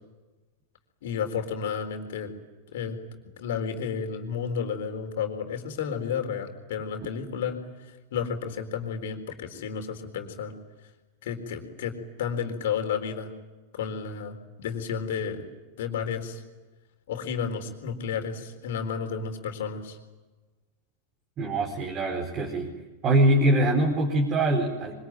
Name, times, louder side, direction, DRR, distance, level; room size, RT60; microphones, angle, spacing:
voice 1, 1.0-2.3 2.7-3.0 3.4-10.5 11.2-11.9 12.2-13.3 13.7-15.5 15.8-16.4 17.1-20.0, left 7 dB, 55° left, 5 dB, 4.1 m, -32 dB
voice 2, 21.4-22.7 23.0-25.0, right 1 dB, 30° right, 0 dB, 4.6 m, -23 dB
26.0 x 25.0 x 9.1 m, 1.2 s
figure-of-eight pair, 90°, 0 cm